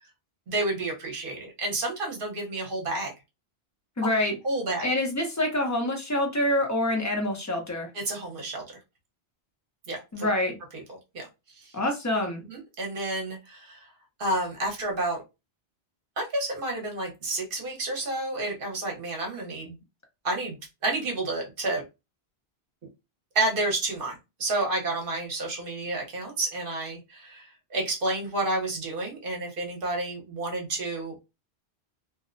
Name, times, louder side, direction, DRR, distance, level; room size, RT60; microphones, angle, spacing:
voice 1, 0.5-3.1 4.4-4.9 7.9-8.6 9.9-10.3 11.1-11.3 11.6-11.7 12.5-13.9 14.2-15.2 16.2-19.8 20.2-20.6 20.8-21.8 23.3-31.1, right 2 dB, 60° right, 0 dB, 0.9 m, -30 dB
voice 2, 4.0-4.4 4.8-7.9 10.1-10.6 11.7-12.4, left 1 dB, 25° left, 2 dB, 0.4 m, -26 dB
2.6 x 2.0 x 2.4 m, 0.25 s
omnidirectional pair, 1.1 m